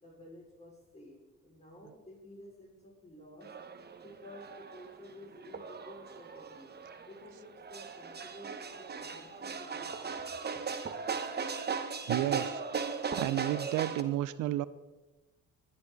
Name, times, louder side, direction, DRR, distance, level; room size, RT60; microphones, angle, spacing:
voice 1, 0.0-1.2 1.4-3.5 4.0-6.7 7.0-10.2, left 1 dB, 20° left, -1 dB, 5.2 m, -52 dB
sound 1, 3.4-14.0, right 5 dB, 35° right, 1.2 m, -38 dB
voice 2, 12.1-12.6 13.2-14.7, right 14 dB, 85° right, 16 dB, 0.6 m, -31 dB
19.5 x 11.0 x 4.0 m, 1.1 s
cardioid pair, 90°, 30 cm